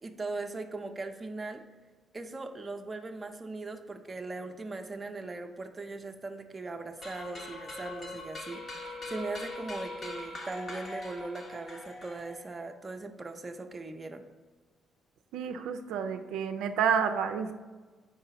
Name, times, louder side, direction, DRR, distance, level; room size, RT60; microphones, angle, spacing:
voice 1, 0.0-1.6 2.1-14.2, right 3 dB, 25° right, 6 dB, 0.5 m, -39 dB
sound 1, 7.0-12.6, left 2 dB, 45° left, 1.2 m, -42 dB
voice 2, 15.3-17.5, right 7 dB, 90° right, 6 dB, 0.4 m, -29 dB
4.8 x 3.9 x 5.6 m, 1.3 s
cardioid pair, 90°, 0 cm